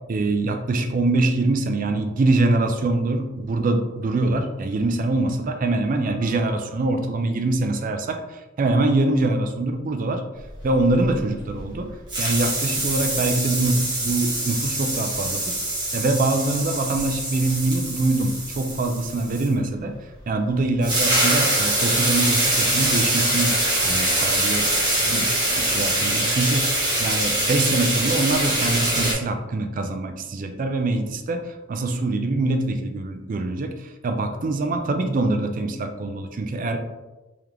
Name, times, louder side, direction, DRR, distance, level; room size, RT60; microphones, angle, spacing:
voice 1, 0.1-10.2 10.6-15.6 15.9-19.9 20.3-23.6 23.8-24.7 25.0-36.8, right 2 dB, 40° right, 6 dB, 0.3 m, -24 dB
sound 1, 10.6-11.8 12.1-19.5 20.5-20.6 20.8-29.1, right 1 dB, 20° right, 1.1 m, -23 dB
3.6 x 3.3 x 2.9 m, 1.1 s
head